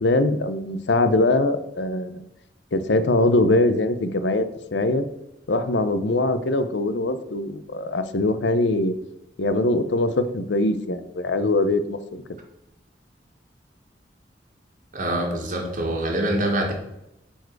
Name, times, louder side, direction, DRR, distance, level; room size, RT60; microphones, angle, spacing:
voice 1, 0.0-2.2 2.7-5.1 5.5-8.9 9.4-12.2, left 2 dB, 80° left, 11 dB, 0.7 m, -22 dB
voice 2, 14.9-16.7, right 1 dB, 50° right, 2 dB, 1.8 m, -25 dB
9.0 x 4.6 x 4.7 m, 0.85 s
head